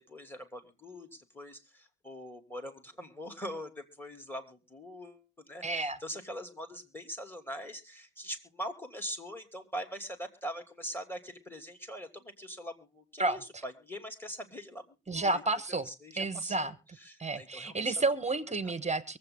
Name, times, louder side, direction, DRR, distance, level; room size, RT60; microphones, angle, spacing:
voice 1, 0.0-15.4 15.7-16.7 17.0-17.9 18.6-18.7, equal, 5° left, 7 dB, 2.7 m, -43 dB
voice 2, 5.6-6.0 13.2-13.4 15.1-15.9 16.2-16.7 17.2-19.2, right 3 dB, 15° right, 14 dB, 1.3 m, -31 dB
23.5 x 8.1 x 3.8 m, 0.30 s
hypercardioid pair, 70°, 45 cm